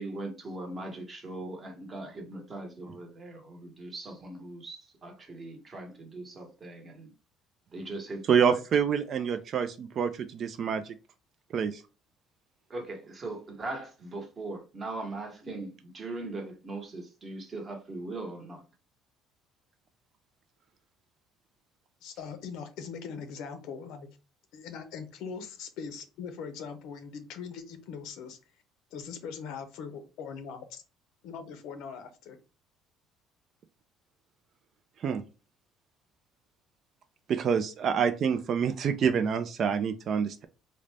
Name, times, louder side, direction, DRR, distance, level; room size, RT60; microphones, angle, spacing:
voice 1, 0.0-7.1 7.7-8.9 12.7-18.6, right 2 dB, 25° right, 1.0 m, -40 dB
voice 2, 8.3-10.8 11.5-11.8 35.0-35.2 37.3-40.4, right 7 dB, 45° right, 0.4 m, -27 dB
voice 3, 22.0-24.1 24.5-28.4 28.9-30.8 31.2-32.4, left 6 dB, 75° left, 0.7 m, -41 dB
3.8 x 2.1 x 3.3 m
cardioid pair, 140°, 0 cm